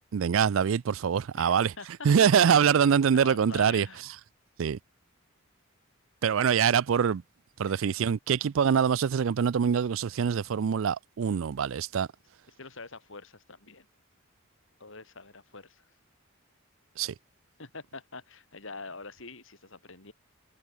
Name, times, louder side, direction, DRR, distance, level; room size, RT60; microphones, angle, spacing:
voice 1, 0.1-1.7 2.0-3.9 4.6-4.8 6.2-7.2 7.6-12.1 17.0-17.1, right 7 dB, 65° right, 0.4 m, -24 dB
voice 2, 1.4-2.1 2.4-2.8 3.1-4.0 7.7-8.0 12.5-13.9 14.8-15.9 17.6-20.1, left 3 dB, 65° left, 4.0 m, -45 dB
head